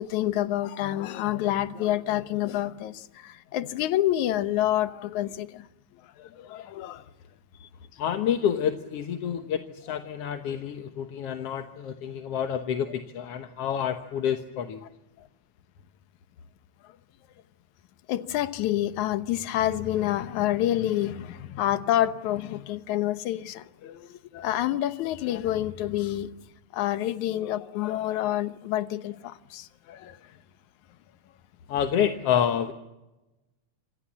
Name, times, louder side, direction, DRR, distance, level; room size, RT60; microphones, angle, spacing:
voice 1, 0.0-5.7 6.2-7.0 7.6-7.7 10.5-10.6 18.1-26.3 26.7-30.2, left 13 dB, 75° left, 2.4 m, -28 dB
voice 2, 8.0-14.8 31.7-32.7, left 9 dB, 60° left, 2.0 m, -28 dB
28.0 x 27.0 x 7.3 m
omnidirectional pair, 3.5 m